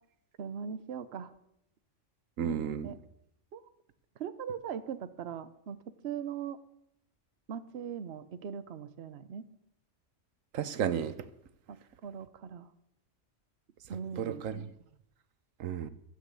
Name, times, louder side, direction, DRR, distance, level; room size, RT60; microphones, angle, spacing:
voice 1, 0.4-1.3 2.4-3.0 3.5-3.6 4.2-6.6 7.5-9.5 11.7-11.8 12.0-12.7 13.9-14.5, right 7 dB, 55° right, 11 dB, 1.0 m, -40 dB
voice 2, 2.4-2.9 10.5-11.1 14.2-14.7 15.6-15.9, right 8 dB, 90° right, 12 dB, 1.2 m, -33 dB
13.0 x 7.8 x 8.3 m, 0.77 s
omnidirectional pair, 1.3 m